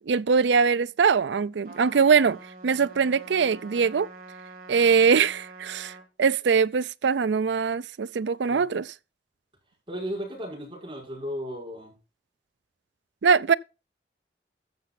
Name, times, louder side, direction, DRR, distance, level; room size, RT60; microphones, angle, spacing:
voice 1, 0.1-2.4 2.6-4.1 4.7-8.9 13.2-13.5, right 6 dB, 80° right, 0.4 m, -22 dB
Trumpet, 1.6-6.1, right 3 dB, 50° right, 3.0 m, -46 dB
voice 2, 9.9-11.9, equal, 30° right, 5.8 m, -35 dB
13.5 x 6.8 x 4.1 m
head